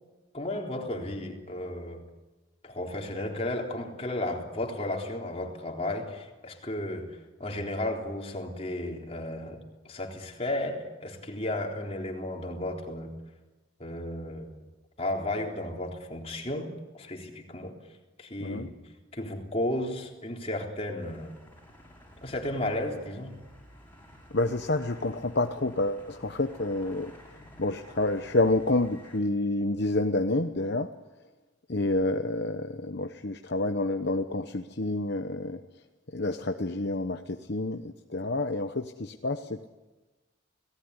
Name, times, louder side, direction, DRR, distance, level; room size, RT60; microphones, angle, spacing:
voice 1, 0.3-2.0 2.6-13.1 13.8-14.5 15.0-17.8 18.2-18.7 19.1-21.4 22.2-23.4, left 1 dB, 30° left, 1 dB, 3.9 m, -34 dB
sound 1, 21.0-29.2, equal, 10° left, 7.1 m, -52 dB
voice 2, 24.3-27.1 27.6-30.9 31.7-35.6 36.1-39.7, left 2 dB, 55° left, 6 dB, 1.0 m, -28 dB
30.0 x 18.5 x 9.8 m, 1.2 s
head